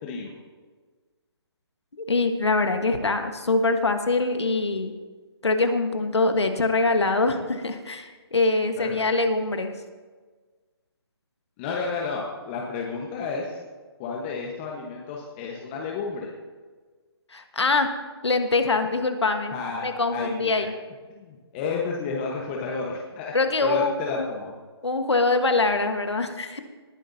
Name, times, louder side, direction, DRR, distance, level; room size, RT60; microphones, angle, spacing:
voice 1, 0.0-0.3 8.8-9.0 11.6-13.6 14.0-16.3 19.5-19.9 20.1-20.7 21.1-23.3 23.6-24.5, left 4 dB, 25° left, -1 dB, 1.2 m, -31 dB
voice 2, 2.0-4.9 5.4-9.7 17.3-17.9 18.2-19.5 19.8-20.7 23.3-24.3 24.8-26.6, left 3 dB, 90° left, 7 dB, 1.4 m, -23 dB
19.0 x 9.6 x 2.8 m, 1.4 s
hypercardioid pair, 150°, 14 cm